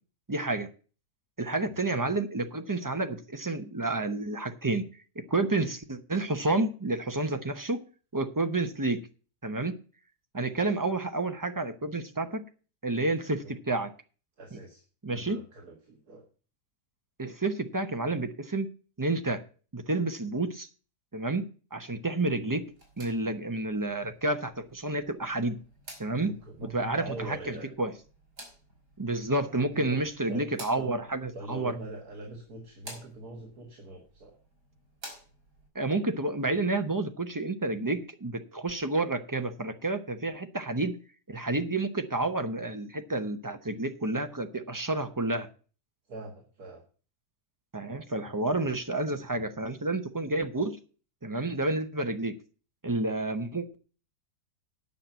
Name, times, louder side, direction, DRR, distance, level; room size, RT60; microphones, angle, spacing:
voice 1, 0.3-0.7 1.4-4.8 5.3-7.8 8.1-9.0 9.4-9.8 10.3-12.4 12.8-13.9 15.0-15.4 17.2-18.7 19.0-19.4 19.7-20.7 21.1-22.6 23.0-25.6 26.0-26.3 26.7-27.9 29.0-31.7 35.7-41.0 41.3-45.5 47.7-50.8 51.2-52.3 52.8-53.8, right 2 dB, 20° right, 7 dB, 0.5 m, -30 dB
voice 2, 13.2-13.5 14.4-16.3 26.2-27.7 29.7-30.0 30.3-30.5 30.8-30.9 31.3-34.4 46.1-46.8, right 2 dB, 65° right, 1 dB, 2.1 m, -42 dB
sound 1, 22.6-35.7, right 1 dB, 85° right, 4.0 m, -52 dB
9.9 x 5.9 x 8.0 m, 0.38 s
omnidirectional pair, 1.7 m